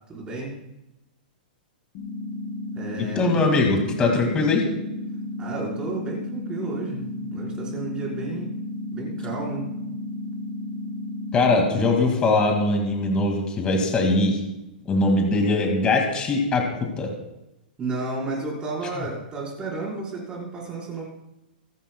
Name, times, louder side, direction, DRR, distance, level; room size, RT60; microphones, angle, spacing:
voice 1, 0.1-0.5 2.8-3.3 5.4-7.0 7.3-8.5 8.9-9.7 17.8-21.0, right 3 dB, 20° right, -4 dB, 4.7 m, -32 dB
sound 1, 1.9-11.9, left 1 dB, 35° left, 1.1 m, -33 dB
voice 2, 3.0-4.6 11.3-14.4 14.8-17.1, left 2 dB, 20° left, 1 dB, 2.2 m, -21 dB
25.5 x 11.0 x 2.3 m, 0.93 s
hypercardioid pair, 150°, 5 cm